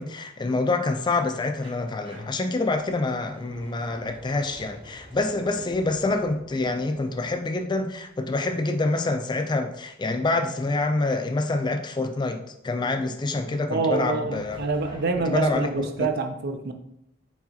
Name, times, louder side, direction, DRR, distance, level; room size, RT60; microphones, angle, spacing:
voice 1, 0.0-14.6 15.3-16.1, left 2 dB, 25° left, 7 dB, 0.4 m, -26 dB
sound 1, 1.6-8.4 13.9-16.1, equal, 25° right, 1.0 m, -50 dB
voice 2, 13.7-16.7, right 4 dB, 55° right, 7 dB, 0.5 m, -26 dB
4.6 x 3.9 x 2.8 m, 0.79 s
head